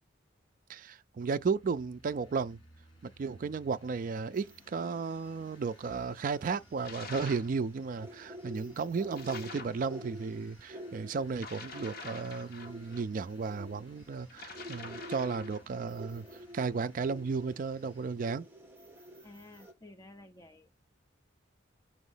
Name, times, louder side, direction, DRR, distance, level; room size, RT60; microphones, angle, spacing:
voice 1, 0.7-2.6 3.0-16.3 16.5-18.5, right 5 dB, 45° right, 0.3 m, -34 dB
sound 1, 1.4-18.1, left 1 dB, 70° left, 2.7 m, -61 dB
sound 2, 4.3-19.7, right 1 dB, 10° right, 1.3 m, -49 dB
sound 3, 6.8-7.5 9.1-9.8 11.3-13.0 14.3-15.7, left 4 dB, 50° left, 1.1 m, -46 dB
voice 2, 19.2-20.7, left 2 dB, 20° left, 0.7 m, -52 dB
6.0 x 3.1 x 5.5 m
head